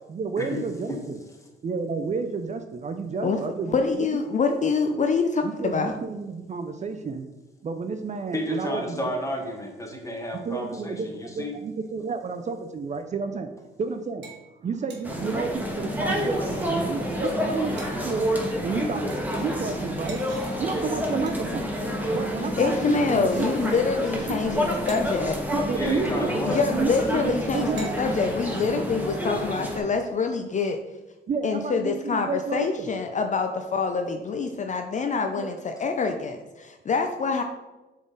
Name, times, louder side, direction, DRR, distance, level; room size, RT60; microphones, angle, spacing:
voice 1, 0.1-1.2 1.6-4.2 5.4-7.3 7.6-9.0 10.4-13.5 13.8-14.3 14.6-17.8 18.0-18.4 18.6-20.2 20.6-21.7 22.1-23.5 24.3-24.6 25.5-28.1 31.3-32.9 35.4-35.5, right 4 dB, 35° right, 8 dB, 0.5 m, -31 dB
voice 2, 3.6-6.0 22.6-25.4 26.4-30.8 31.4-37.4, left 4 dB, 40° left, 5 dB, 0.5 m, -25 dB
voice 3, 8.3-11.6 16.3-18.1 18.6-19.0 25.7-26.7 35.8-35.9, left 1 dB, 15° left, 1 dB, 1.4 m, -33 dB
sound 1, 13.6-13.9 14.2-14.4 14.7-15.1 16.2-16.7 17.2-17.3 17.6-18.2 18.7-19.0 19.3-22.4 23.0-24.3 24.5-24.6 24.9-25.4 26.2-26.3 26.5-26.7 27.0-27.1 27.6-28.0 28.5-28.9, right 4 dB, 60° right, 1.2 m, -47 dB
sound 2, 15.0-29.8, equal, 10° right, 1.3 m, -29 dB
7.2 x 3.8 x 4.0 m, 1.1 s
cardioid pair, 90°, 20 cm